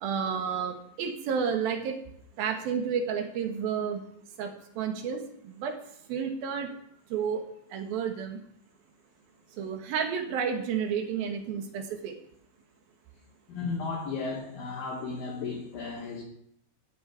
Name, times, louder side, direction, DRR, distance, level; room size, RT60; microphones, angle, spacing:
voice 1, 0.0-2.0 2.4-4.0 4.4-4.5 4.8-5.2 5.6-5.8 6.1-6.7 7.1-7.4 7.7-8.4 9.6-12.1, right 7 dB, 70° right, 5 dB, 3.2 m, -30 dB
voice 2, 13.5-16.2, left 4 dB, 60° left, -4 dB, 3.7 m, -34 dB
15.0 x 11.0 x 4.8 m, 0.67 s
omnidirectional pair, 4.7 m